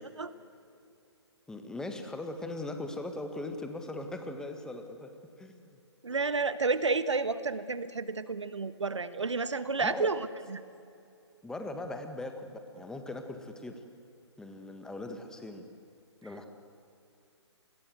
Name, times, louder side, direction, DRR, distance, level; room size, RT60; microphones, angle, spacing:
voice 1, 1.5-5.1 5.4-5.8 9.8-10.1 11.4-13.8 14.4-15.7 16.2-16.5, left 2 dB, 5° left, 6 dB, 1.8 m, -39 dB
voice 2, 6.0-10.6, right 4 dB, 80° right, 13 dB, 1.5 m, -31 dB
30.0 x 21.0 x 8.0 m, 2.6 s
figure-of-eight pair, 140°, 15 cm